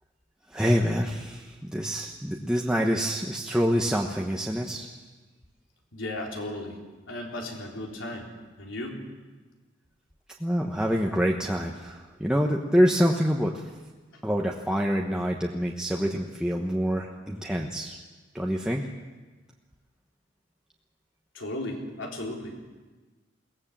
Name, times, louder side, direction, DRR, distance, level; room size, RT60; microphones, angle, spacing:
voice 1, 0.5-4.9 10.4-13.6 14.2-18.0 18.3-18.9, equal, 5° right, -1 dB, 1.1 m, -26 dB
voice 2, 5.9-6.8 7.1-8.3 8.6-9.0 14.1-14.2 21.3-22.6, left 1 dB, 75° left, 0 dB, 4.0 m, -35 dB
22.0 x 18.0 x 7.5 m, 1.3 s
head